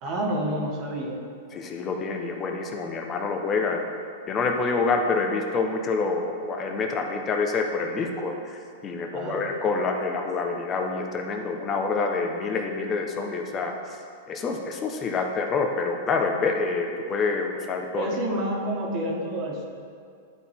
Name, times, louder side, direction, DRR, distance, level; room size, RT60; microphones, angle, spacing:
voice 1, 0.0-1.2 9.1-9.5 17.9-19.7, right 1 dB, 45° right, -1 dB, 1.6 m, -29 dB
voice 2, 1.5-3.8 4.3-13.7 14.3-18.1, left 4 dB, 25° left, 2 dB, 0.9 m, -27 dB
11.5 x 4.3 x 3.6 m, 2.3 s
hypercardioid pair, 120°, 0 cm